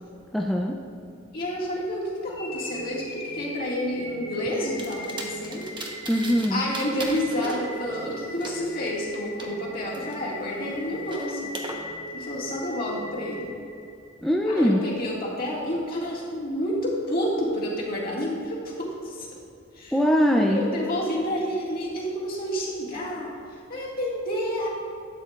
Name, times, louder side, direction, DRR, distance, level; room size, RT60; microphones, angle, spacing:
voice 1, 0.3-0.8 6.1-6.6 14.2-14.8 19.9-20.6, equal, ahead, -1 dB, 0.4 m, -21 dB
voice 2, 1.3-5.7 6.5-11.5 12.1-13.5 14.4-19.3 19.7-20.0 20.4-24.7, equal, 50° left, -5 dB, 1.9 m, -29 dB
sound 1, 2.3-14.3, left 1 dB, 75° left, 1.5 m, -39 dB
sound 2, 4.8-6.5 6.7-9.5 9.9-11.7, right 2 dB, 25° right, 0.9 m, -38 dB
12.0 x 8.5 x 2.4 m, 2.6 s
head